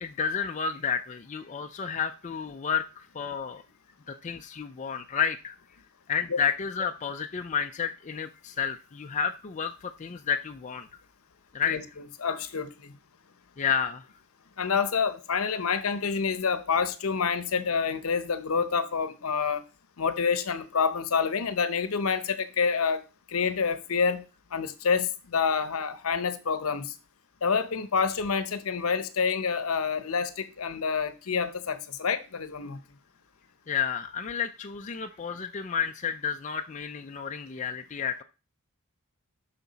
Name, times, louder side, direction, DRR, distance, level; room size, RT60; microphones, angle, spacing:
voice 1, 0.0-3.6 4.1-5.5 6.1-10.9 11.5-11.8 13.6-14.0 33.7-38.2, left 7 dB, 35° left, 0.4 m, -31 dB
voice 2, 12.2-12.9 14.6-19.6 20.0-23.0 23.3-24.2 24.5-26.9 27.4-32.8, left 5 dB, 70° left, 0.8 m, -28 dB
8.3 x 5.8 x 4.0 m
head